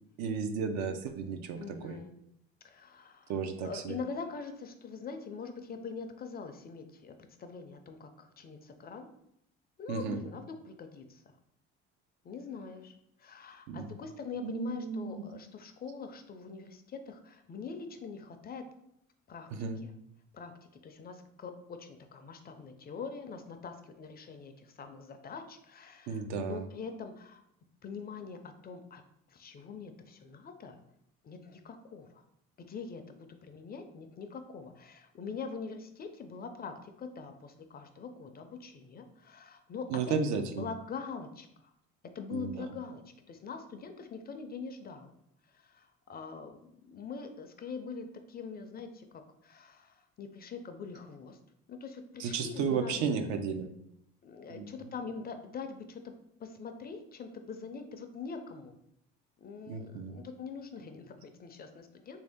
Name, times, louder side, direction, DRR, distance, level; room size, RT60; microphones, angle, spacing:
voice 1, 0.2-2.0 3.3-4.0 9.9-10.2 13.7-13.9 14.4-15.2 19.5-19.8 26.1-26.7 39.9-40.7 42.3-42.7 52.2-53.7 54.5-54.7 59.7-60.2, right 5 dB, 70° right, 7 dB, 0.5 m, -34 dB
voice 2, 1.6-2.2 2.6-3.3 3.6-7.1 7.4-9.1 9.8-11.2 12.2-18.6 19.3-19.5 19.8-19.9 20.3-20.5 20.8-27.4 27.8-29.0 29.3-30.8 31.2-32.2 32.6-40.2 40.5-41.7 42.1-45.1 45.5-51.4 51.7-53.0 54.2-56.1 56.4-58.7 59.4-62.2, left 5 dB, 35° left, 7 dB, 0.4 m, -43 dB
3.3 x 2.7 x 3.4 m, 0.77 s
supercardioid pair, 90°, 29 cm